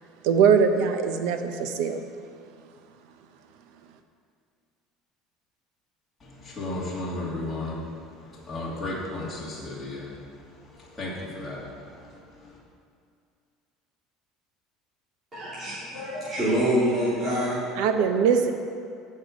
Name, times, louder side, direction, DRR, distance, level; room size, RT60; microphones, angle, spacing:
voice 1, 0.2-2.1 17.8-18.5, right 6 dB, 70° right, 7 dB, 0.8 m, -21 dB
voice 2, 6.2-12.6, left 2 dB, 10° left, -8 dB, 2.6 m, -35 dB
voice 3, 15.3-17.8, equal, 20° right, -12 dB, 2.9 m, -26 dB
15.5 x 5.6 x 5.2 m, 2.3 s
cardioid pair, 160°, 0 cm